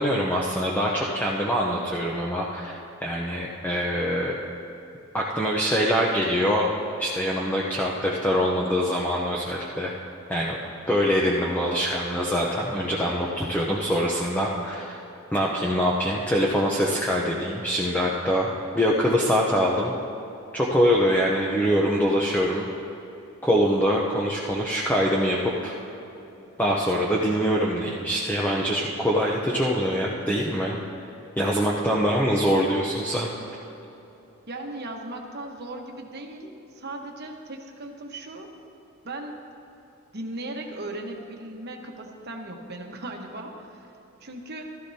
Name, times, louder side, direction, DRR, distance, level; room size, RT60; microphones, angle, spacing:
voice 1, 0.0-4.4 5.1-6.7 7.0-9.9 10.3-10.6 10.9-15.0 15.3-19.9 20.5-22.7 23.4-25.7 26.6-30.8 31.4-33.3, equal, 10° left, -3 dB, 0.7 m, -24 dB
voice 2, 34.5-38.5 39.0-39.4 40.1-43.9 44.2-44.6, right 2 dB, 50° right, 2 dB, 1.2 m, -37 dB
15.0 x 13.5 x 2.8 m, 3.0 s
head